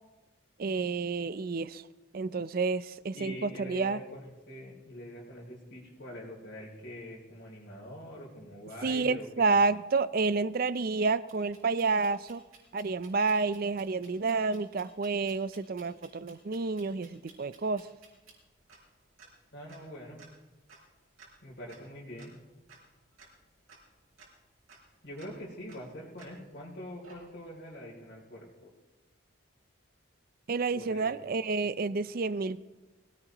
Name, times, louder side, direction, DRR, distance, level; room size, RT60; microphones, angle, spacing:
voice 1, 0.6-1.8 2.1-4.0 8.8-12.4 12.7-17.9 30.5-32.6, right 4 dB, 45° right, 16 dB, 0.4 m, -29 dB
voice 2, 3.1-9.5 19.5-20.2 21.4-22.3 25.0-28.7 30.7-31.2, equal, 55° left, -4 dB, 3.0 m, -44 dB
sound 1, 11.3-26.6 27.0-27.7, right 4 dB, 80° right, 4.9 m, -58 dB
23.0 x 17.5 x 3.0 m, 1.1 s
head